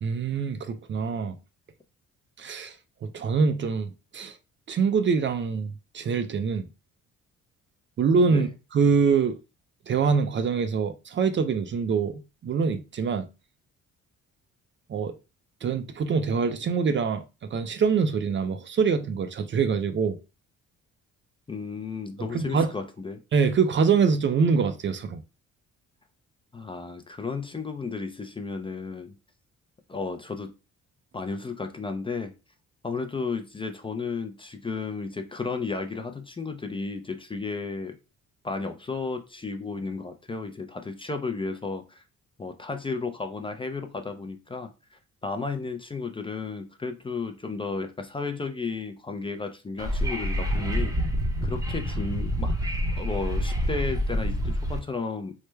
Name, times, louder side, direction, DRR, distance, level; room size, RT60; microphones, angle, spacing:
voice 1, 0.0-1.4 2.4-2.7 3.0-4.3 4.7-6.7 8.0-8.5 8.7-9.4 9.9-13.3 14.9-15.1 15.6-20.2 22.3-22.7 23.3-25.2, right 5 dB, 40° right, 0.4 m, -24 dB
voice 2, 21.5-23.2 26.5-29.1 29.9-30.5 31.1-32.3 32.8-38.0 38.4-42.0 42.4-50.9 51.4-52.5 53.0-55.3, left 4 dB, 15° left, 0.4 m, -33 dB
Wind / Subway metro underground, 49.8-54.8, equal, 10° right, 0.7 m, -27 dB
3.2 x 2.1 x 3.2 m
cardioid pair, 90°, 30 cm